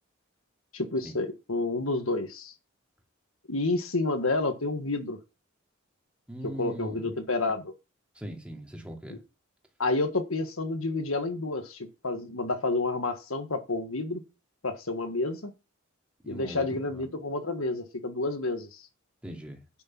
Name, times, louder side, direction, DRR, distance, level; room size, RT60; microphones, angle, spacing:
voice 1, 0.7-2.5 3.5-5.2 6.4-7.7 9.1-9.2 9.8-14.2 14.6-15.5 16.3-18.8, left 2 dB, 90° left, 1.6 m, -30 dB
voice 2, 6.3-7.1 8.2-9.2 16.2-17.1 19.2-19.6, equal, 5° right, 2.6 m, -40 dB
10.0 x 6.4 x 5.9 m
head